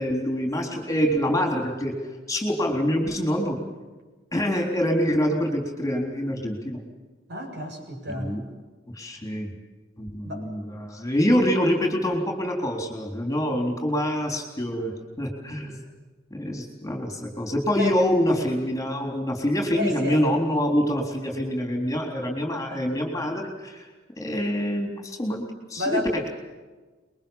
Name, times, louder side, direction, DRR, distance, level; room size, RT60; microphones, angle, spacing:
voice 1, 0.0-1.9 2.3-3.6 4.3-6.8 8.1-8.4 8.9-9.5 10.0-15.8 16.3-23.9 24.2-25.4 25.7-26.3, equal, 15° left, 2 dB, 3.9 m, -25 dB
voice 2, 7.3-8.4 10.2-10.5 17.8-17.9 19.8-20.2 22.6-22.9 25.8-26.3, left 1 dB, 55° right, 3 dB, 7.3 m, -31 dB
27.0 x 22.5 x 7.4 m, 1.3 s
head